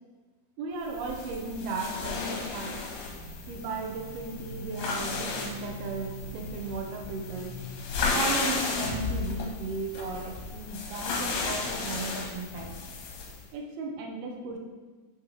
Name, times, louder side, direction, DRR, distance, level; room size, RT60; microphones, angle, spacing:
voice 1, 0.6-2.8 3.5-7.6 8.1-12.7 13.5-14.6, right 3 dB, 75° right, 2 dB, 2.3 m, -36 dB
sound 1, 0.9-13.4, left 4 dB, 80° left, 3.0 m, -34 dB
sound 2, 3.1-8.6, equal, 40° right, 0.7 m, -45 dB
8.5 x 5.2 x 3.0 m, 1.4 s
omnidirectional pair, 5.2 m